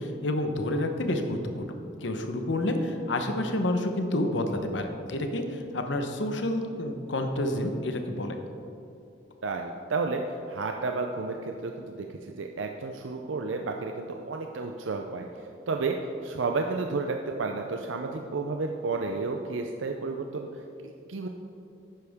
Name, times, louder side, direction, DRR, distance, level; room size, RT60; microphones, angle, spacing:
voice 1, 0.0-1.7 2.0-8.4, left 1 dB, 75° left, 5 dB, 0.9 m, -29 dB
voice 2, 9.4-15.3 15.7-16.0 16.2-21.3, right 3 dB, 90° right, 3 dB, 0.5 m, -32 dB
11.5 x 9.1 x 3.6 m, 2.7 s
head